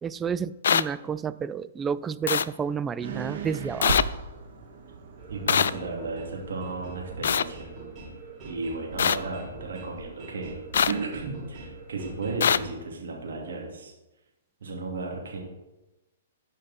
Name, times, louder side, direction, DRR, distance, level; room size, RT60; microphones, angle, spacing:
voice 1, 0.0-4.0, right 7 dB, 15° right, 15 dB, 0.3 m, -30 dB
sound 1, 0.6-0.8 2.3-2.4 3.8-4.0 5.5-5.7 7.2-7.4 9.0-9.2 10.7-10.9 12.4-12.6, left 7 dB, 70° left, 0.3 m, -21 dB
sound 2, 3.0-7.8, right 4 dB, 55° right, 1.6 m, -37 dB
sound 3, 5.2-12.6, right 3 dB, 35° right, 3.3 m, -43 dB
voice 2, 5.3-7.7 8.4-10.6 10.8-13.9 14.6-15.4, right 3 dB, 75° right, -1 dB, 2.8 m, -34 dB
11.0 x 5.2 x 4.3 m, 1.0 s
hypercardioid pair, 125°, 0 cm